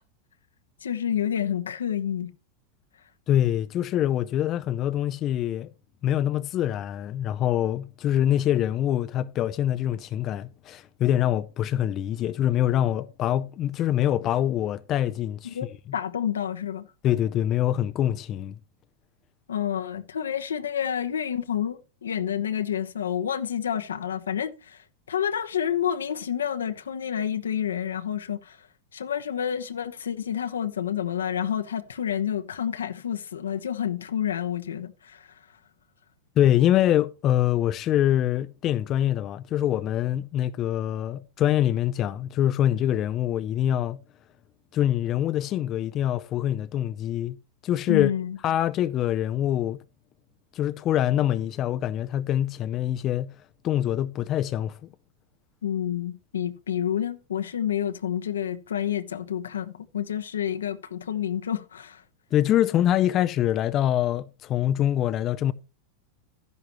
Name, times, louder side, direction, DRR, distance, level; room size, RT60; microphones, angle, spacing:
voice 1, 0.8-2.3 15.4-16.9 19.5-28.7 28.9-35.3 47.9-48.4 55.6-62.0, left 9 dB, 85° left, 1.0 m, -29 dB
voice 2, 3.3-5.7 6.0-15.6 17.0-18.5 36.4-44.0 44.7-47.4 47.6-48.1 48.4-49.8 50.5-53.3 53.6-54.8 62.3-65.5, left 11 dB, 40° left, 0.6 m, -24 dB
12.5 x 10.5 x 3.0 m
hypercardioid pair, 100°, 0 cm